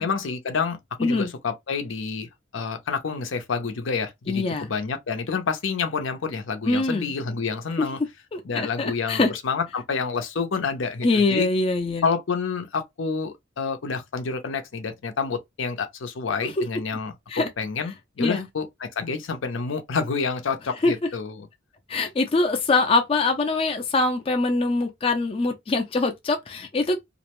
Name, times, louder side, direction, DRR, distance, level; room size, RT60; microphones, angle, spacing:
voice 1, 0.0-8.0 8.4-11.5 12.0-17.1 17.6-21.5, left 5 dB, 75° left, 0.6 m, -28 dB
voice 2, 1.0-1.3 4.3-4.7 6.6-7.1 7.8-7.9 8.3-9.3 11.0-12.1 17.3-17.5 18.2-18.5 20.8-20.9 21.9-27.0, left 3 dB, 30° left, 0.4 m, -23 dB
2.5 x 2.0 x 2.9 m
head